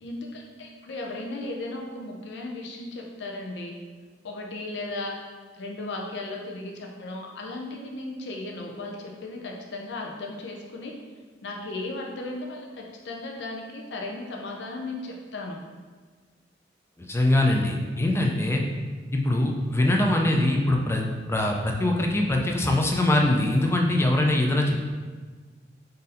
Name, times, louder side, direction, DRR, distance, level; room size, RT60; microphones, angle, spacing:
voice 1, 0.0-3.7 4.2-5.2 5.6-10.9 11.4-15.6, left 2 dB, 70° left, 0 dB, 0.5 m, -36 dB
voice 2, 17.0-18.6 19.1-24.9, left 1 dB, 15° left, 1 dB, 0.4 m, -23 dB
3.8 x 2.6 x 4.0 m, 1.4 s
head